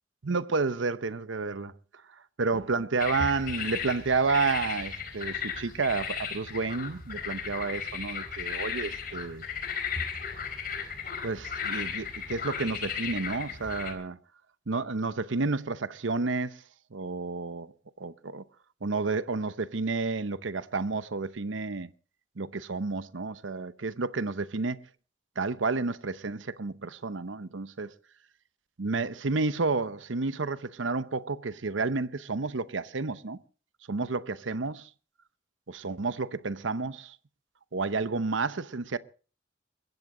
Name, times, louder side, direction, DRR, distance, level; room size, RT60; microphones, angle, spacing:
voice 1, 0.2-1.7 2.4-9.4 11.2-14.2 14.7-16.6 16.9-18.4 18.8-21.9 22.4-24.9 25.4-27.9 28.8-33.4 33.9-34.9 35.7-37.2 37.7-39.0, right 4 dB, 85° right, 0.8 m, -30 dB
sound 1, 3.0-13.9, left 6 dB, 50° left, 4.2 m, -35 dB
21.5 x 16.0 x 3.8 m
head